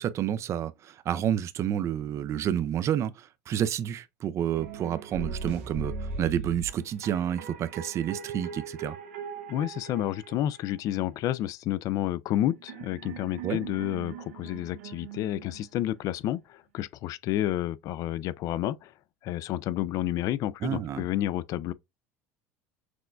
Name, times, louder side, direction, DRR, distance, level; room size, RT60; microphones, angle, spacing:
voice 1, 0.0-5.9 6.2-9.0 13.4-13.6 20.6-21.1, right 10 dB, 40° right, 0.4 m, -29 dB
sound 1, 4.5-10.9 12.3-16.0, right 5 dB, 85° right, 0.9 m, -40 dB
voice 2, 9.5-18.9 19.2-21.7, left 13 dB, 55° left, 0.3 m, -30 dB
6.0 x 2.2 x 2.4 m
supercardioid pair, 95°, 7 cm